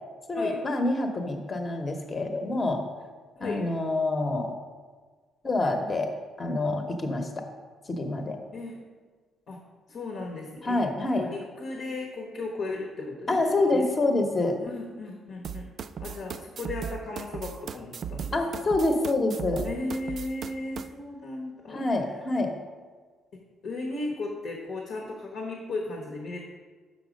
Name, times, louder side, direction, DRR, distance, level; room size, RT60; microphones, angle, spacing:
voice 1, 0.3-2.8 3.4-4.5 5.4-6.1 6.4-7.5 7.9-8.4 10.6-11.3 13.3-14.6 18.3-19.7 21.7-22.5, left 2 dB, 35° left, 4 dB, 0.9 m, -26 dB
voice 2, 9.9-10.8 11.1-13.9 14.6-15.7 16.0-18.7 19.6-21.9 23.6-26.4, left 2 dB, 75° left, -1 dB, 1.2 m, -36 dB
sound 1, 15.4-20.9, right 7 dB, 55° right, 0.3 m, -37 dB
6.4 x 5.7 x 5.2 m, 1.5 s
cardioid pair, 90°, 0 cm